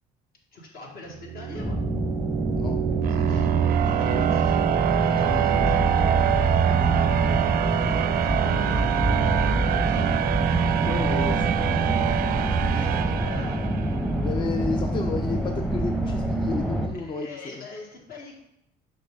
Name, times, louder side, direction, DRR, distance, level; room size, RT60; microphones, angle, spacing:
voice 1, 0.5-1.8 3.1-3.5 3.8-4.6 4.9-6.1 7.7-10.1 12.7-13.6 17.0-18.4, left 3 dB, 60° left, -1 dB, 1.7 m, -43 dB
sound 1, 1.2-14.1, right 9 dB, 60° right, 0.4 m, -24 dB
sound 2, 1.5-16.9, right 1 dB, 5° left, 0.8 m, -27 dB
voice 2, 10.9-11.9 14.2-17.7, left 4 dB, 30° left, 6 dB, 0.4 m, -33 dB
6.6 x 5.1 x 3.6 m, 0.80 s
cardioid pair, 110°, 17 cm